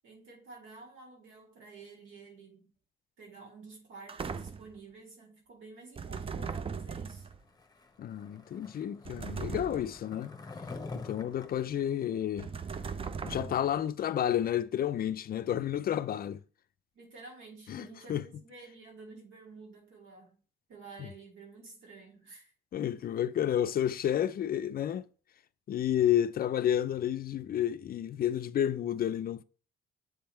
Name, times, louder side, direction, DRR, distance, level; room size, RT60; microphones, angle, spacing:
voice 1, 0.0-2.7 3.2-7.3 16.9-20.4 20.7-22.5, right 4 dB, 80° right, 2.7 m, -51 dB
sound 1, 4.1-4.8 6.0-7.4 9.1-10.0 12.4-13.8, right 5 dB, 30° right, 0.5 m, -38 dB
Skateboard, 7.5-12.9, left 3 dB, 20° left, 0.9 m, -47 dB
voice 2, 8.0-10.4 11.0-12.5 13.2-16.4 17.7-18.2 21.0-21.1 22.7-25.1 25.7-29.4, left 10 dB, 50° left, 0.4 m, -30 dB
7.9 x 3.4 x 4.4 m
cardioid pair, 90°, 20 cm